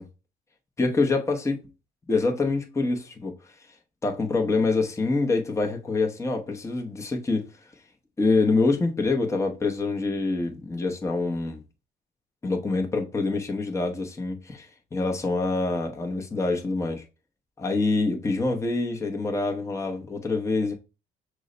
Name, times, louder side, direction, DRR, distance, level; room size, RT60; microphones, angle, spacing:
voice 1, 0.8-1.7 2.1-3.5 4.0-7.5 8.2-11.6 12.4-17.0 17.6-20.7, left 3 dB, 15° left, 0.9 m, -26 dB
6.2 x 2.1 x 3.8 m
cardioid pair, 110°, 17 cm